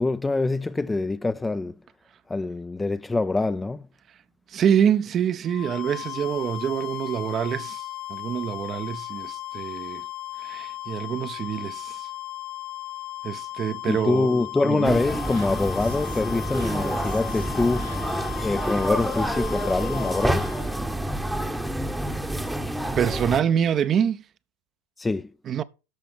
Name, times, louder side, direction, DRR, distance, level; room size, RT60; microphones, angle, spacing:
voice 1, 0.0-1.7 2.3-3.8 13.9-17.9 18.4-20.5 25.0-25.3, left 3 dB, 10° left, 0.4 m, -25 dB
voice 2, 4.5-10.0 10.4-12.1 13.2-14.3 14.6-15.0 23.0-24.2 25.4-25.6, right 8 dB, 35° right, 0.6 m, -26 dB
sound 1, 5.4-20.7, left 16 dB, 50° left, 0.7 m, -36 dB
sound 2, 14.8-23.4, right 1 dB, 5° right, 0.9 m, -28 dB
sound 3, 15.3-18.3, right 9 dB, 80° right, 2.7 m, -49 dB
13.0 x 4.9 x 4.4 m
hypercardioid pair, 95°, 0 cm